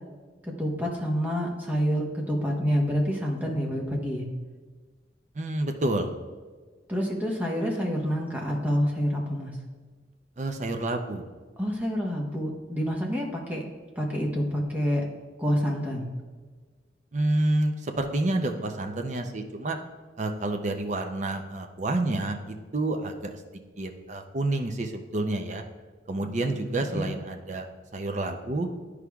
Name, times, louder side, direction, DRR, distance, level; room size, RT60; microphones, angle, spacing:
voice 1, 0.4-4.3 6.9-9.6 11.6-13.7 13.9-15.0 15.4-16.0 26.9-27.1, equal, 10° right, -1 dB, 1.0 m, -27 dB
voice 2, 5.3-6.1 10.4-11.3 17.1-19.8 20.2-23.4 23.8-25.6 26.1-27.7 27.9-28.7, right 2 dB, 40° right, 5 dB, 0.5 m, -29 dB
11.5 x 4.8 x 2.3 m, 1.4 s
head